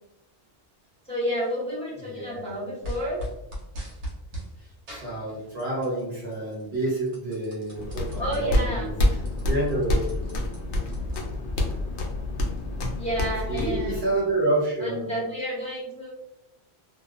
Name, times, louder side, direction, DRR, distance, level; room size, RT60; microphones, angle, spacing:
voice 1, 1.1-3.2 8.2-8.9 13.0-14.1 14.8-16.1, equal, 5° left, -7 dB, 1.0 m, -30 dB
voice 2, 2.0-2.5 4.9-9.0 9.5-10.1 13.5-15.1, right 2 dB, 65° right, -6 dB, 1.1 m, -28 dB
sound 1, 2.8-4.5 4.9-6.0 6.3-8.4 8.8-8.9 9.1-11.6, equal, 90° right, 1.1 m, -38 dB
sound 2, 7.7-14.0, left 1 dB, 90° left, 0.9 m, -27 dB
2.4 x 2.3 x 2.4 m, 0.89 s
omnidirectional pair, 1.1 m